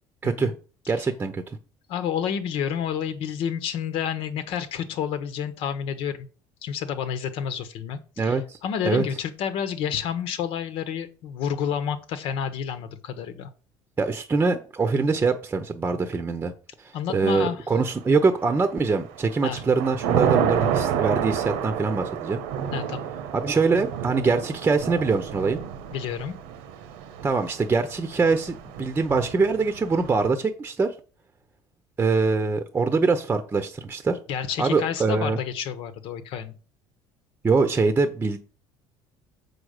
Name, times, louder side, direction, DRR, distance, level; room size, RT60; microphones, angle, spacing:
voice 1, 0.9-1.6 8.2-8.6 8.8-9.0 14.0-16.5 16.8-22.4 23.3-25.6 27.2-30.9 32.0-34.2 34.6-35.4 37.4-38.4, right 4 dB, 20° right, 9 dB, 0.8 m, -23 dB
voice 2, 1.9-6.3 6.6-13.5 16.9-17.6 19.4-19.6 22.7-23.1 25.9-26.3 34.3-36.5, left 8 dB, 70° left, 10 dB, 1.2 m, -29 dB
Thunder / Rain, 18.2-18.7 19.2-30.3, right 8 dB, 90° right, 1.2 m, -29 dB
6.9 x 4.8 x 6.6 m, 0.38 s
cardioid pair, 120°, 10 cm